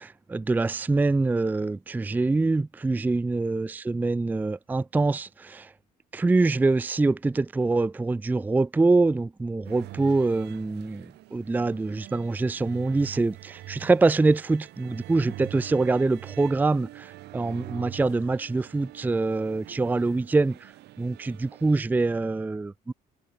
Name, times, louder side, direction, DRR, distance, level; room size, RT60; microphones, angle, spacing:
voice 1, 0.0-5.7 6.1-20.7 21.0-22.9, right 3 dB, 10° right, 0.4 m, -25 dB
sound 1, 9.6-21.8, right 16 dB, 80° right, 6.4 m, -44 dB
cardioid pair, 110°, 17 cm